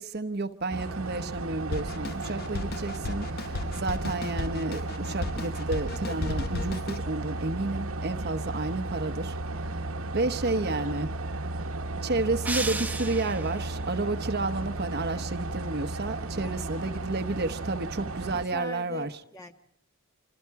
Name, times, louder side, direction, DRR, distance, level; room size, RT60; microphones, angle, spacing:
voice 1, 0.0-9.7 10.1-11.1 12.0-19.1, right 3 dB, 50° right, 1.0 m, -31 dB
sound 1, 0.7-18.5, right 2 dB, 75° right, 1.2 m, -34 dB
Drum kit, 1.7-7.0, left 3 dB, 45° left, 0.8 m, -35 dB
voice 2, 10.5-11.0 16.4-17.1 18.3-19.5, left 2 dB, 15° left, 1.6 m, -43 dB
sound 2, 12.4-13.7, right 3 dB, 10° right, 0.8 m, -33 dB
26.5 x 26.0 x 4.7 m
head